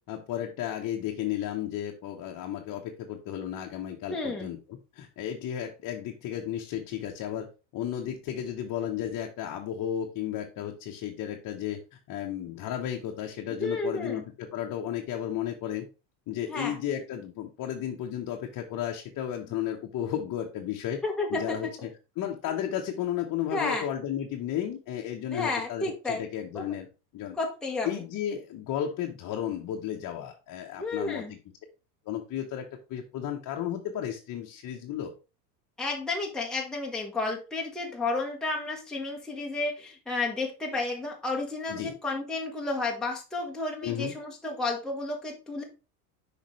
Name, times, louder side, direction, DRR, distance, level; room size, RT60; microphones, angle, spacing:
voice 1, 0.1-7.5 7.7-15.9 16.3-21.0 21.3-21.9 22.2-26.9 27.1-27.4 27.8-31.2 32.1-35.1 41.7-42.0 43.8-44.1, left 10 dB, 40° left, 2 dB, 1.1 m, -33 dB
voice 2, 4.1-4.5 13.6-14.2 16.5-16.8 21.0-21.6 23.5-23.9 25.3-26.2 26.5-26.7 27.4-28.0 30.8-31.3 35.8-45.6, left 3 dB, ahead, -2 dB, 1.2 m, -31 dB
6.5 x 5.1 x 3.2 m, 0.31 s
supercardioid pair, 105°, 48 cm